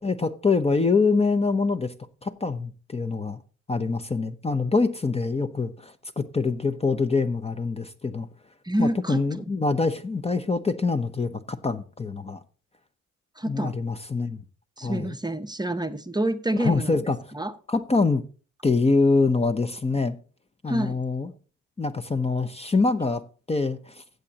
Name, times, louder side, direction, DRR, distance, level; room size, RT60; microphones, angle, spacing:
voice 1, 0.0-1.9 2.2-3.4 3.7-8.3 8.8-12.4 13.5-14.4 14.8-15.1 16.6-17.2 17.7-18.2 18.6-20.2 20.6-21.3 21.8-23.2 23.5-24.0, left 4 dB, 20° left, 0.8 m, -25 dB
voice 2, 8.6-9.2 13.4-13.8 14.8-17.5 20.7-21.0, right 1 dB, 15° right, 0.8 m, -28 dB
15.0 x 7.9 x 2.9 m
cardioid pair, 90°, 30 cm